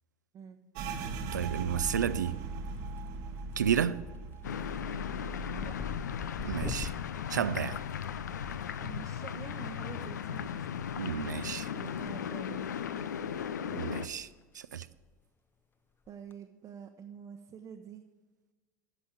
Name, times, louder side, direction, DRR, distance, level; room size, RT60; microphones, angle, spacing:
sound 1, 0.7-10.2 10.4-11.7 12.0-12.5 12.9-13.5, right 3 dB, 60° right, 1.0 m, -42 dB
voice 1, 1.3-2.4 3.6-4.0 6.4-6.9 7.3-7.8 11.0-11.7 13.7-14.3 14.5-14.9, right 8 dB, 90° right, 16 dB, 0.4 m, -31 dB
sound 2, 1.8-2.3 2.7-3.2 3.5-3.8 4.1-8.6 9.9-10.1 11.3-12.1 12.4-12.6 13.1-13.2 13.5-13.6 13.9-14.1 14.4-14.5 16.1-16.3, left 5 dB, 20° left, 0.7 m, -43 dB
sound 3, 4.4-14.1, left 8 dB, 85° left, 0.4 m, -37 dB
voice 2, 8.8-10.7 11.7-13.3 16.1-18.0, right 7 dB, 40° right, 3 dB, 0.8 m, -47 dB
9.1 x 6.3 x 7.3 m, 1.3 s
hypercardioid pair, 80°, 9 cm